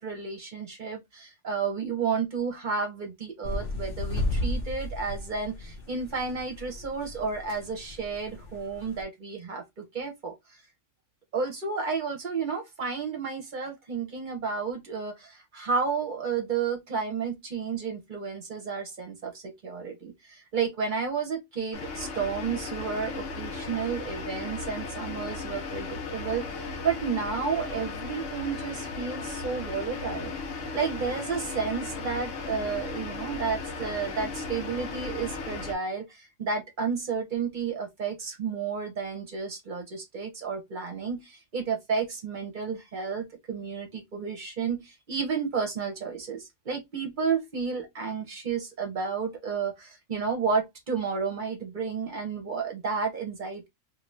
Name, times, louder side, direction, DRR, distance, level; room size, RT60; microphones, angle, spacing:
voice 1, 0.0-10.3 11.3-30.3 30.7-53.7, right 5 dB, 45° right, 0.8 m, -32 dB
sound 1, 3.4-9.0, left 1 dB, 55° left, 0.8 m, -34 dB
sound 2, 21.7-35.7, left 4 dB, 85° left, 1.1 m, -36 dB
2.7 x 2.6 x 3.1 m
omnidirectional pair, 1.2 m